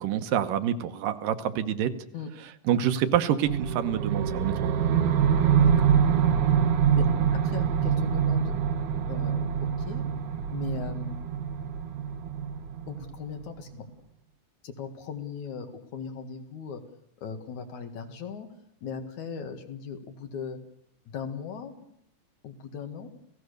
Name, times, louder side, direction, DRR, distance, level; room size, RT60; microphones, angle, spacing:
voice 1, 0.0-1.9 2.7-4.7, right 10 dB, 85° right, 9 dB, 2.8 m, -27 dB
sound 1, 3.4-13.5, right 7 dB, 70° right, 2.7 m, -25 dB
voice 2, 7.3-8.5 9.1-10.0 10.5-11.2 12.9-13.8 14.6-15.7 15.9-16.8 17.2-18.5 18.8-20.6 21.1-21.9 22.4-23.1, left 6 dB, 65° left, 6 dB, 3.2 m, -38 dB
28.5 x 17.0 x 6.7 m, 0.73 s
omnidirectional pair, 3.8 m